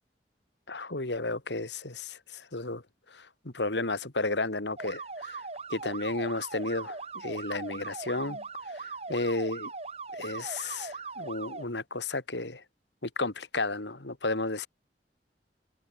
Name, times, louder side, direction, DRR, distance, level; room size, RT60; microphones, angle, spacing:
voice 1, 0.7-2.8 3.1-5.4 5.7-8.4 8.7-9.7 10.1-12.6 13.0-14.7, left 2 dB, 85° left, 2.6 m, -33 dB
sound 1, 4.8-11.6, right 4 dB, 35° right, 3.0 m, -40 dB
head